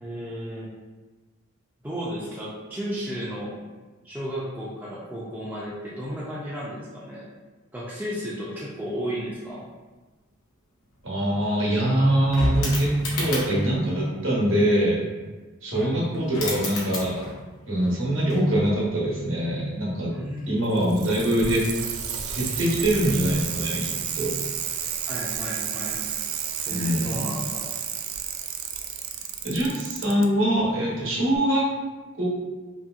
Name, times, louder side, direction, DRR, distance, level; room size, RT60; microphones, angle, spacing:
voice 1, 0.0-0.7 1.8-3.6 4.0-7.3 7.7-9.7 15.7-15.9 20.1-20.6 25.1-26.0 26.7-27.8, equal, 10° right, -7 dB, 0.4 m, -33 dB
sound 1, 10.9-11.0 11.2-13.7 15.8-15.9 16.1-17.5 17.8-18.9 20.3-20.5, left 2 dB, 90° left, 0.8 m, -32 dB
voice 2, 11.0-15.0 15.6-17.2 17.7-20.1 20.5-21.6 22.3-24.4 26.7-27.3 29.4-31.7 32.2-32.3, right 1 dB, 65° right, -5 dB, 0.9 m, -23 dB
Bicycle, 20.6-30.3 31.4-31.5, right 8 dB, 85° right, 0.3 m, -31 dB
2.9 x 2.7 x 2.4 m, 1.3 s
head